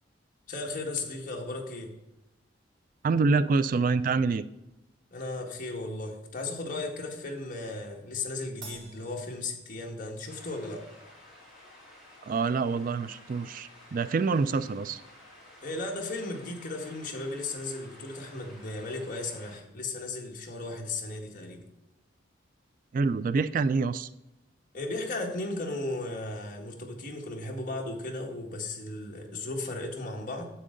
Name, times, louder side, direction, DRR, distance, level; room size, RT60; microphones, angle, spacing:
voice 1, 0.5-1.9 5.1-10.8 15.6-21.6 24.7-30.5, left 2 dB, 45° left, 0 dB, 1.7 m, -35 dB
voice 2, 3.0-4.4 12.2-15.0 22.9-24.1, right 4 dB, 45° right, 15 dB, 0.3 m, -26 dB
Crash cymbal, 8.6-10.3, right 3 dB, 65° right, 2.3 m, -49 dB
sound 1, 10.3-19.6, left 1 dB, ahead, 3.7 m, -53 dB
10.0 x 7.7 x 3.8 m, 0.94 s
head